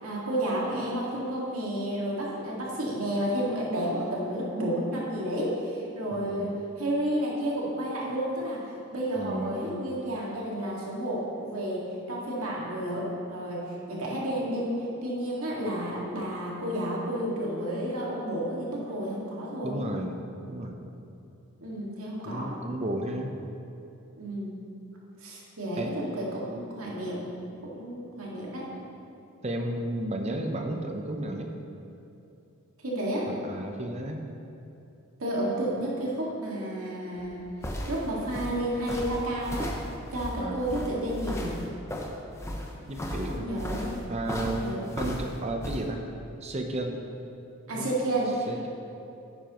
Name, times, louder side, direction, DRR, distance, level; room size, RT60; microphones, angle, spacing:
voice 1, 0.0-6.5 6.8-8.6 8.9-11.8 12.1-14.7 15.0-19.8 21.6-22.6 24.2-24.6 25.2-27.2 27.6-28.7 32.8-33.3 35.2-37.4 37.9-39.7 40.1-41.6 43.3-44.0 44.4-44.8 47.7-48.7, right 1 dB, 85° right, -4 dB, 2.0 m, -31 dB
voice 2, 6.1-6.6 9.2-9.9 19.6-20.9 22.2-23.3 25.8-25.9 29.4-31.5 33.3-34.2 40.3-40.6 42.9-43.5 44.1-46.0 46.4-47.0 47.7-47.9 48.5-48.7, right 1 dB, 30° right, 3 dB, 0.7 m, -33 dB
sound 1, 37.2-45.8, left 1 dB, 15° left, 0.7 m, -36 dB
10.0 x 9.7 x 3.1 m, 2.8 s
head